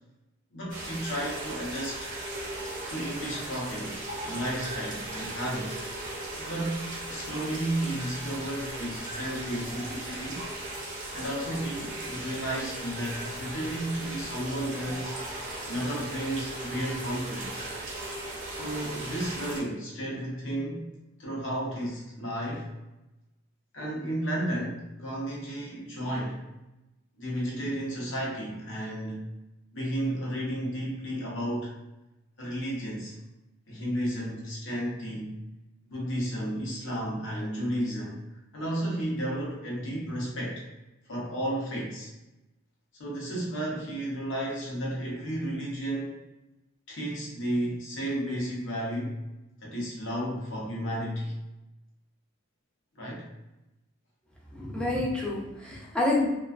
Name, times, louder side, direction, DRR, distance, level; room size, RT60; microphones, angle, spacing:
voice 1, 0.5-2.1 2.9-5.8 6.4-10.4 11.1-15.1 15.7-17.7 18.5-20.9 21.2-22.7 23.7-26.4 27.2-29.3 29.7-31.7 32.4-33.1 33.7-35.4 35.9-38.2 38.5-40.6 41.1-42.1 43.0-46.1 46.9-49.2 49.6-51.3 53.0-53.3, right 1 dB, 65° left, -4 dB, 0.8 m, -33 dB
sound 1, 0.7-19.6, right 2 dB, 40° right, 0.6 m, -37 dB
voice 2, 54.5-56.3, left 2 dB, 5° left, -5 dB, 0.5 m, -28 dB
2.4 x 2.3 x 2.3 m, 0.99 s
head